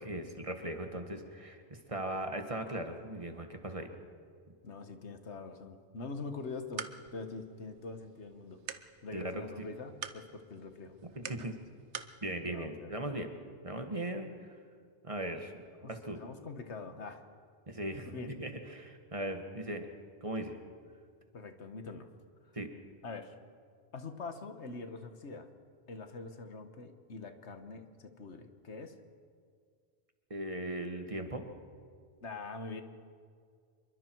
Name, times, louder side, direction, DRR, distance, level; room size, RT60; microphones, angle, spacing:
voice 1, 0.0-3.9 9.1-9.7 11.1-11.5 12.2-13.3 13.6-14.6 15.0-15.6 15.9-16.2 17.7-19.9 20.2-20.5 22.5-22.7 30.3-31.4, right 1 dB, 30° right, 5 dB, 1.6 m, -38 dB
voice 2, 4.6-8.6 9.0-11.0 11.3-11.4 12.5-12.9 15.8-17.2 18.1-18.3 21.3-22.1 23.0-23.3 23.9-25.5 25.9-28.9 32.2-32.8, left 3 dB, 85° left, 8 dB, 1.7 m, -44 dB
sound 1, 6.3-12.2, right 8 dB, 90° right, 1.2 m, -47 dB
26.0 x 23.0 x 4.6 m, 2.1 s
omnidirectional pair, 1.1 m